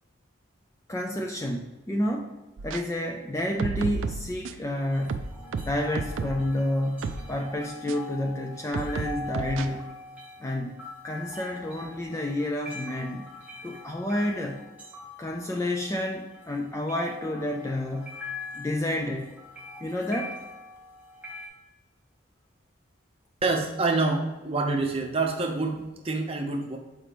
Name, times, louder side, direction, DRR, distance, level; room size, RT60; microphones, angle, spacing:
voice 1, 0.9-2.3 2.6-5.3 5.7-9.9 10.4-13.3 13.6-14.6 15.2-18.1 18.5-19.3 19.8-20.4, left 1 dB, 15° left, 2 dB, 0.3 m, -30 dB
sound 1, 2.6-2.8 3.4-4.7 5.1-6.5 7.0-7.3 7.9-8.0 8.7-9.7, right 4 dB, 75° right, 0.4 m, -32 dB
sound 2, 4.7-21.5, left 2 dB, 10° right, 1.1 m, -43 dB
voice 2, 23.4-26.8, right 3 dB, 30° right, 2 dB, 0.7 m, -27 dB
6.8 x 4.9 x 3.0 m, 1.1 s
head